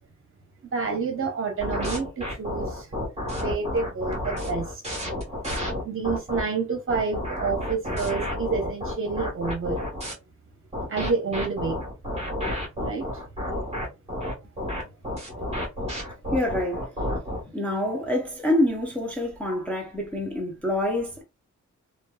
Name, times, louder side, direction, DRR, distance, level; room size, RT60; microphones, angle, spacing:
voice 1, 0.7-2.9 3.3-4.7 5.8-9.8 10.9-11.8 12.8-13.0, right 4 dB, 45° right, 0.9 m, -28 dB
sound 1, 1.6-6.4 6.9-10.1 10.7-17.4, left 1 dB, 20° right, 1.2 m, -30 dB
voice 2, 16.3-16.8 17.5-21.2, left 1 dB, 5° left, 0.5 m, -26 dB
3.0 x 2.2 x 2.2 m
wide cardioid pair, 155°, 30 cm